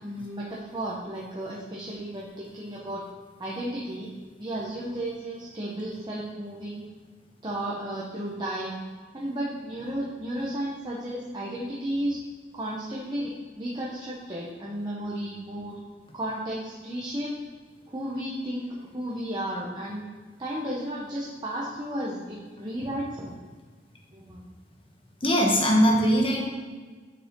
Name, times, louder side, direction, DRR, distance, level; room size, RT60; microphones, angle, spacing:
voice 1, 0.0-3.0 3.4-4.1 4.4-6.8 7.4-8.8 9.1-12.2 12.5-15.8 16.1-17.3 17.9-18.7 18.9-20.0 20.4-23.4 24.1-24.4, right 1 dB, 25° right, -5 dB, 1.0 m, -33 dB
voice 2, 25.2-26.4, equal, 30° left, 0 dB, 1.2 m, -20 dB
6.7 x 6.5 x 3.7 m, 1.4 s
head